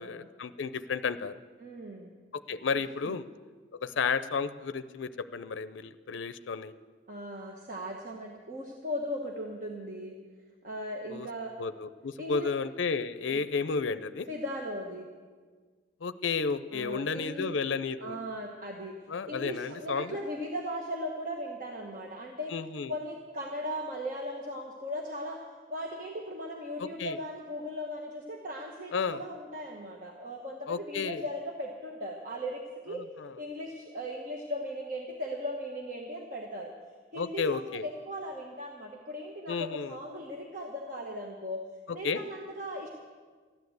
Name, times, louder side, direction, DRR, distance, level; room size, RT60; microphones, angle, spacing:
voice 1, 0.0-1.4 2.3-3.3 3.8-6.7 11.1-11.3 11.6-14.3 16.0-18.2 19.1-20.2 22.5-22.9 26.8-27.2 28.9-29.2 30.7-31.2 32.9-33.3 37.1-37.8 39.5-40.0 42.0-42.2, left 5 dB, 75° left, 13 dB, 0.5 m, -32 dB
voice 2, 1.6-2.2 3.1-3.2 7.1-10.2 10.6-11.5 12.2-12.5 13.3-13.5 14.3-15.1 16.7-17.5 18.0-18.9 19.3-22.5 22.9-25.4 25.7-33.0 33.4-36.7 37.1-41.7 41.9-42.9, equal, 45° right, 0 dB, 1.2 m, -38 dB
14.0 x 10.5 x 7.9 m, 1.5 s
head